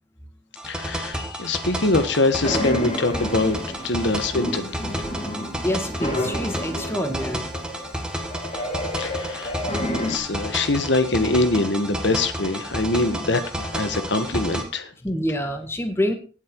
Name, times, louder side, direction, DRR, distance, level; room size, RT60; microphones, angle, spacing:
voice 1, 0.6-5.0 9.0-9.6 9.9-14.9, left 2 dB, 80° left, 10 dB, 1.4 m, -24 dB
sound 1, 0.6-14.6, right 1 dB, 5° right, 1.8 m, -31 dB
sound 2, 2.4-10.2, left 1 dB, 35° left, 3.4 m, -30 dB
voice 2, 5.6-7.5 9.5-9.6 15.0-16.1, left 1 dB, 15° left, 5 dB, 1.9 m, -26 dB
17.5 x 7.5 x 4.6 m, 0.37 s
head